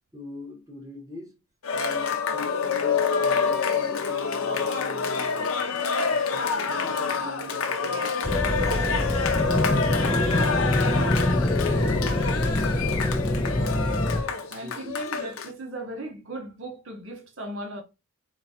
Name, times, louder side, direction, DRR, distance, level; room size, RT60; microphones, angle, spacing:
voice 1, 0.1-1.4 1.7-5.7 6.3-8.0 12.9-13.6 14.6-15.0, left 1 dB, 15° right, 1.0 m, -42 dB
Cheering, 1.6-15.5, left 5 dB, 85° left, 0.6 m, -27 dB
sound 1, 8.2-14.2, left 1 dB, 20° left, 0.4 m, -25 dB
voice 2, 14.5-17.8, right 1 dB, 65° right, 0.9 m, -37 dB
3.9 x 2.3 x 4.2 m
head